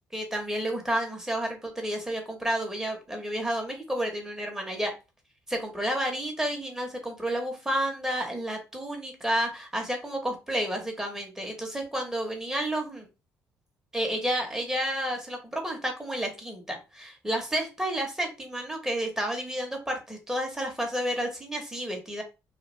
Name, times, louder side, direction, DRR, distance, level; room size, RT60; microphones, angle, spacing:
voice 1, 0.1-4.9 5.5-13.1 13.9-22.2, right 1 dB, 10° right, 2 dB, 1.0 m, -31 dB
2.4 x 2.2 x 3.1 m, 0.28 s
cardioid pair, 85°, 6 cm